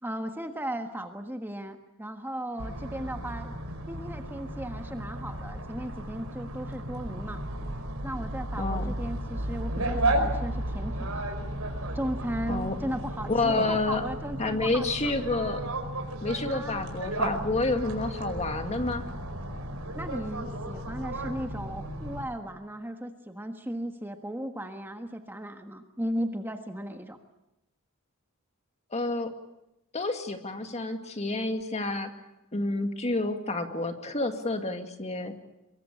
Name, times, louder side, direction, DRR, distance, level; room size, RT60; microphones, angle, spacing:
voice 1, 0.0-3.5 3.9-7.4 8.0-11.2 11.9-15.2 16.5-16.9 19.9-27.2, right 1 dB, 10° right, 5 dB, 1.4 m, -36 dB
sound 1, 2.6-22.2, right 1 dB, 85° right, 5.0 m, -34 dB
voice 2, 8.6-8.9 12.5-12.8 13.3-14.0 14.4-15.6 16.2-19.0 28.9-29.3 29.9-32.1 32.5-35.3, left 2 dB, 30° left, 6 dB, 2.2 m, -29 dB
24.0 x 22.5 x 8.6 m, 0.90 s
head